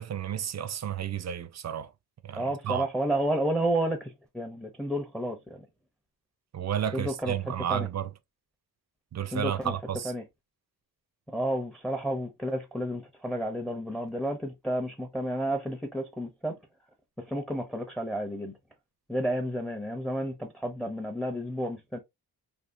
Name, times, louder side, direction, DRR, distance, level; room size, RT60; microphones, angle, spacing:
voice 1, 0.0-1.9 2.2-2.9 6.5-8.1 9.1-10.1, right 9 dB, 45° right, 0.5 m, -32 dB
voice 2, 2.3-5.7 6.9-7.9 9.3-9.7 10.0-10.2 11.3-16.6 17.2-18.5 19.1-22.0, right 1 dB, ahead, 0.6 m, -31 dB
3.5 x 2.3 x 2.5 m
cardioid pair, 70°, 39 cm